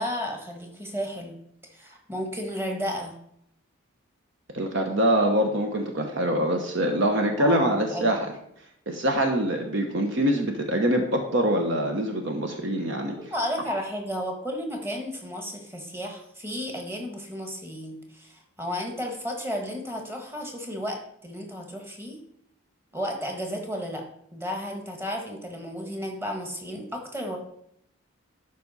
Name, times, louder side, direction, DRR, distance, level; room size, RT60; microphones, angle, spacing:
voice 1, 0.0-1.4 1.7-3.2 7.4-8.1 13.1-22.2 22.9-24.0 24.3-27.4, equal, 10° right, 2 dB, 1.3 m, -33 dB
voice 2, 4.5-8.3 8.9-13.1, right 1 dB, 60° right, 4 dB, 1.0 m, -24 dB
12.0 x 4.8 x 4.1 m, 0.73 s
head